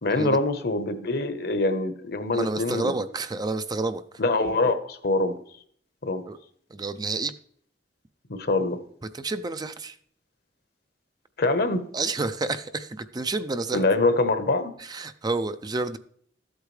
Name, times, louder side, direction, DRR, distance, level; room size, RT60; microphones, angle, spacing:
voice 1, 0.0-2.9 4.2-5.4 6.0-6.2 8.3-8.8 11.4-11.9 13.7-14.7, left 2 dB, 65° left, 9 dB, 1.0 m, -24 dB
voice 2, 2.3-4.0 6.3-6.4 6.7-7.3 9.1-10.0 11.9-13.8 14.8-16.0, right 3 dB, 25° right, 11 dB, 0.4 m, -29 dB
13.5 x 8.2 x 3.2 m, 0.62 s
head